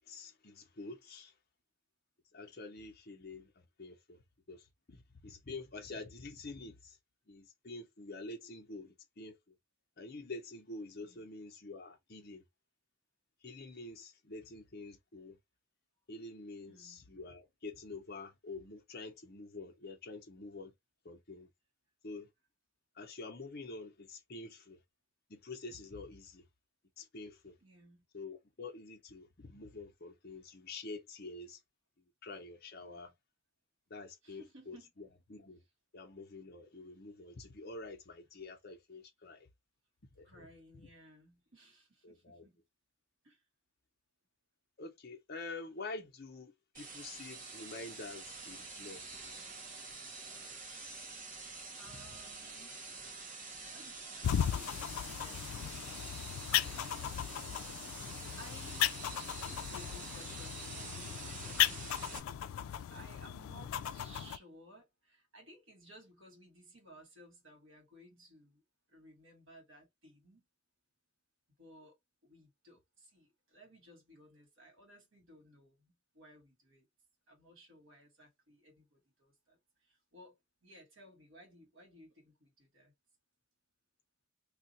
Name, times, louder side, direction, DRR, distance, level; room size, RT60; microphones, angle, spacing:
voice 1, 0.1-1.3 2.3-4.2 4.5-7.0 7.3-9.4 10.0-12.4 13.4-15.4 16.1-20.7 21.0-21.5 22.0-22.3 23.0-24.8 25.3-26.4 27.0-27.6 28.1-31.6 32.2-33.1 33.9-35.6 35.9-39.5 40.2-40.5 42.0-42.5 44.8-49.0, left 3 dB, 50° left, 0.8 m, -47 dB
voice 2, 16.7-17.0 27.6-28.0 32.8-33.1 34.2-34.9 40.2-42.6 43.2-43.4 51.7-52.8 53.7-57.1 58.4-59.0 59.5-68.6 68.9-70.5 71.6-72.0 72.2-76.9 77.3-82.9, equal, 65° right, 1.7 m, -59 dB
sound 1, 46.7-62.2, right 3 dB, 40° right, 1.1 m, -47 dB
sound 2, 54.2-64.4, left 10 dB, 90° left, 0.3 m, -36 dB
2.7 x 2.4 x 4.1 m
head